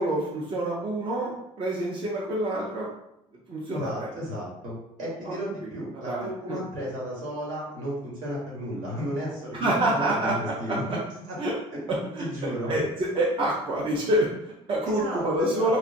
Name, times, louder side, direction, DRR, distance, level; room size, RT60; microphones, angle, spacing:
voice 1, 0.0-2.9 3.5-4.1 5.2-5.3 6.1-6.6 9.6-10.3 11.4-11.5 11.9-12.8 13.1-15.8, right 1 dB, 40° right, -4 dB, 0.6 m, -27 dB
voice 2, 3.7-10.8 11.3-11.4 11.7-11.8 12.2-12.7 14.9-15.8, equal, 75° right, -5 dB, 1.4 m, -34 dB
2.9 x 2.4 x 2.5 m, 0.80 s
cardioid pair, 100°, 14 cm